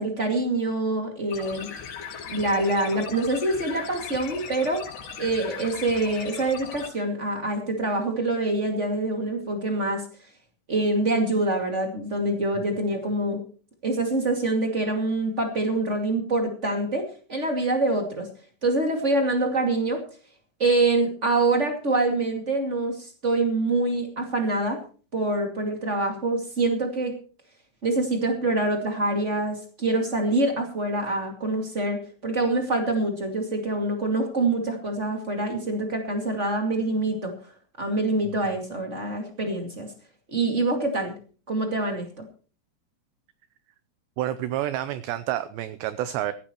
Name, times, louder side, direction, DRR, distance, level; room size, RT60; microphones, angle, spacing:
voice 1, 0.0-1.7 2.3-4.8 5.2-10.0 10.7-13.4 13.8-18.3 18.6-20.0 20.6-24.8 25.1-27.1 27.8-37.3 37.8-39.9 40.3-41.2 41.5-42.2, right 2 dB, 50° right, 0.8 m, -25 dB
sound 1, 1.3-6.9, left 7 dB, 70° left, 5.2 m, -38 dB
voice 2, 44.2-46.3, right 13 dB, 80° right, 2.6 m, -29 dB
17.5 x 15.0 x 3.1 m
omnidirectional pair, 5.7 m